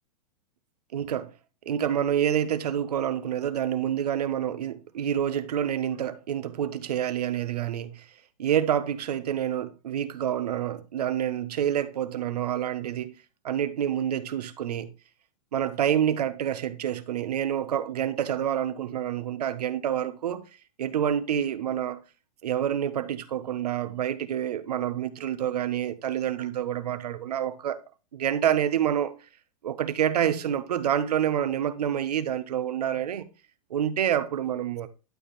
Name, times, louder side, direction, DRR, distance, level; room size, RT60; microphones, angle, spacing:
voice 1, 0.9-1.3 1.7-8.0 8.4-13.1 13.4-14.9 15.5-20.4 20.8-22.0 22.4-27.8 28.1-29.1 29.6-33.3 33.7-34.9, right 10 dB, 85° right, 1.3 m, -27 dB
12.0 x 4.9 x 3.3 m
supercardioid pair, 165°, 20 cm